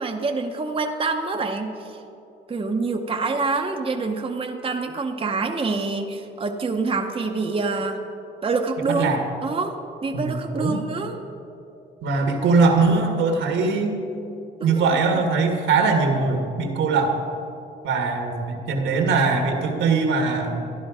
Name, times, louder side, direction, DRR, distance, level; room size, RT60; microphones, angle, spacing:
voice 1, 0.0-2.0 2.5-8.0 8.4-9.2 9.4-11.2 14.6-15.0, right 3 dB, 30° right, 3 dB, 0.9 m, -26 dB
voice 2, 8.9-9.2 10.1-10.8 12.0-14.0 14.6-17.1 17.8-20.7, right 4 dB, 75° right, 3 dB, 1.8 m, -21 dB
13.0 x 11.0 x 4.9 m, 2.8 s
cardioid pair, 90°, 20 cm